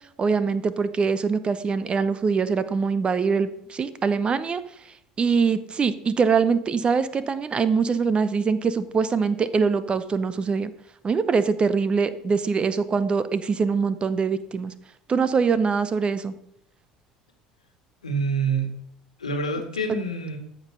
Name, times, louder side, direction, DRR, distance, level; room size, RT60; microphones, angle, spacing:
voice 1, 0.2-4.6 5.2-10.7 11.0-14.7 15.1-16.3, right 5 dB, 30° right, 14 dB, 0.8 m, -23 dB
voice 2, 18.0-18.7 19.2-20.4, right 3 dB, 80° left, 4 dB, 1.7 m, -26 dB
14.0 x 5.5 x 5.7 m, 0.73 s
figure-of-eight pair, 65°, 4 cm